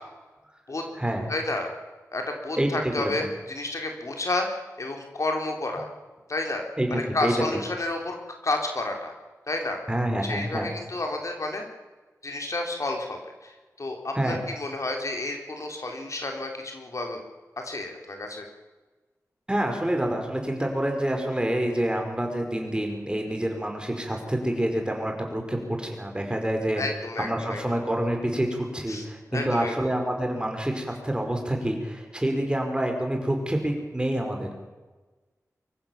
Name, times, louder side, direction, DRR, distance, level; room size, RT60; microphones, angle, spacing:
voice 1, 1.3-1.7 2.1-4.5 4.8-5.9 6.3-6.6 6.9-8.2 8.4-9.1 9.5-9.8 10.2-11.7 12.2-13.5 13.8-17.2 17.6-18.5 26.8-27.6 28.9-29.1 29.3-29.7, left 2 dB, 60° left, 3 dB, 3.8 m, -30 dB
voice 2, 2.6-3.3 6.8-6.9 7.2-7.3 9.9-10.7 14.2-14.4 19.5-26.8 27.2-34.6, right 1 dB, 15° right, 3 dB, 5.2 m, -27 dB
24.5 x 15.0 x 7.3 m, 1.2 s
wide cardioid pair, 65°, 6 cm